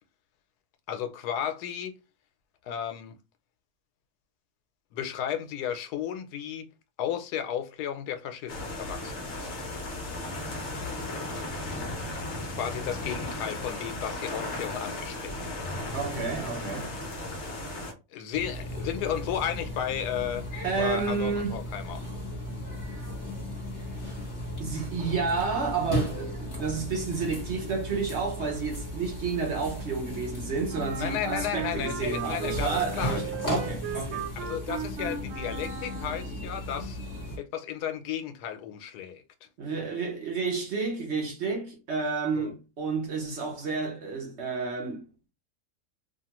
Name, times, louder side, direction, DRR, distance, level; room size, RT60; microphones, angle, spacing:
voice 1, 0.9-1.9 2.6-3.2 4.9-6.7 7.0-9.5 12.6-15.8 18.1-22.0 31.0-33.3 34.5-37.0 37.4-39.2 42.4-42.5, left 9 dB, 85° left, 1.1 m, -34 dB
sound 1, 8.5-17.9, left 2 dB, 55° left, 0.9 m, -35 dB
voice 2, 15.9-16.9 20.6-21.6 24.6-34.3 39.6-45.1, right 5 dB, 55° right, 0.9 m, -31 dB
sound 2, 18.3-37.4, left 1 dB, 15° left, 1.1 m, -36 dB
Wind instrument woodwind instrument, 30.7-36.4, right 7 dB, 90° right, 1.1 m, -37 dB
2.8 x 2.4 x 2.9 m
omnidirectional pair, 1.7 m